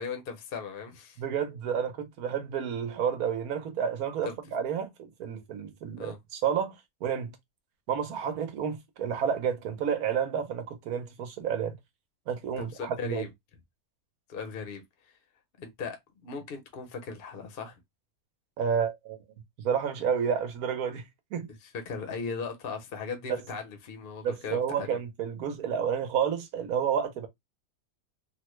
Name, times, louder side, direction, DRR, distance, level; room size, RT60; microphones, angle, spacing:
voice 1, 0.0-1.2 4.2-4.3 6.0-6.2 12.6-13.3 14.3-14.8 15.6-16.0 16.2-17.8 21.6-25.0, left 5 dB, 50° left, 0.7 m, -38 dB
voice 2, 1.2-6.8 7.0-7.3 7.9-11.7 12.3-13.2 18.6-19.2 19.6-21.5 23.3-23.4 24.2-27.3, right 7 dB, 75° right, 1.2 m, -30 dB
3.4 x 2.1 x 3.0 m
omnidirectional pair, 1.6 m